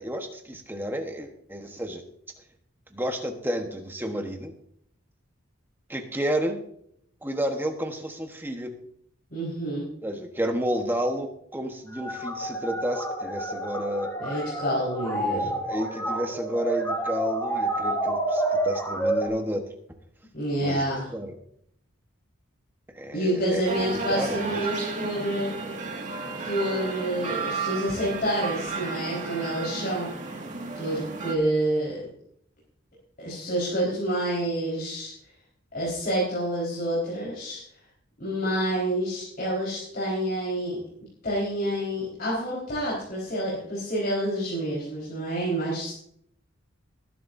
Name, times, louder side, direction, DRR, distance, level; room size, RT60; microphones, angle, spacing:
voice 1, 0.0-2.0 2.9-4.5 5.9-6.6 7.2-8.7 10.0-14.1 15.2-19.6 20.6-20.8 21.1-21.4 22.9-23.6 24.1-24.6, equal, 10° right, 4 dB, 1.2 m, -31 dB
voice 2, 9.3-9.9 14.2-15.6 20.3-21.1 23.1-25.5 26.4-30.1 30.8-32.0 33.2-35.1 35.7-37.6 38.2-40.8 41.2-45.9, right 1 dB, 45° left, -6 dB, 4.5 m, -28 dB
sound 1, 11.9-19.3, right 1 dB, 15° left, 2.8 m, -29 dB
sound 2, 23.6-31.3, right 4 dB, 40° right, 2.0 m, -33 dB
20.0 x 11.0 x 2.7 m, 0.69 s
head